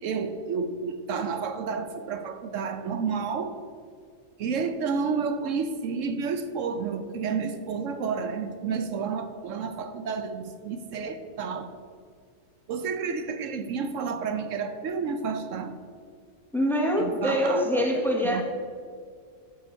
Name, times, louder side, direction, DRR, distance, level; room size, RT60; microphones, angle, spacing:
voice 1, 0.0-3.6 4.4-11.7 12.7-15.8 17.0-18.4, right 5 dB, 80° right, 9 dB, 1.1 m, -30 dB
voice 2, 16.5-18.4, equal, ahead, 1 dB, 1.2 m, -24 dB
12.5 x 6.3 x 5.2 m, 2.1 s
omnidirectional pair, 1.3 m